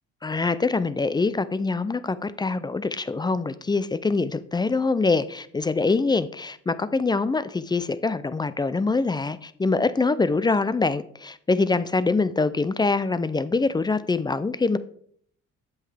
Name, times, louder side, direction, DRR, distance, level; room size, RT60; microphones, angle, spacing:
voice 1, 0.2-14.8, left 3 dB, 15° left, 0.3 m, -24 dB
7.9 x 5.8 x 3.3 m
cardioid pair, 90°, 30 cm